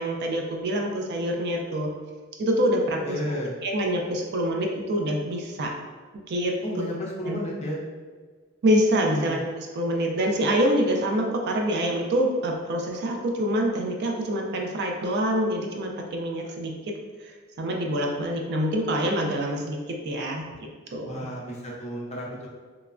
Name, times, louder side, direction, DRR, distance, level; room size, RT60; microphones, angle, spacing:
voice 1, 0.0-1.9 2.4-5.7 6.3-6.5 7.2-7.5 8.6-16.7 17.2-20.5 20.9-21.3, equal, 55° right, 1 dB, 0.4 m, -26 dB
voice 2, 3.1-3.5 6.6-7.8 9.1-9.3 21.0-22.5, left 1 dB, 35° left, -4 dB, 0.6 m, -32 dB
3.0 x 2.2 x 2.4 m, 1.5 s
head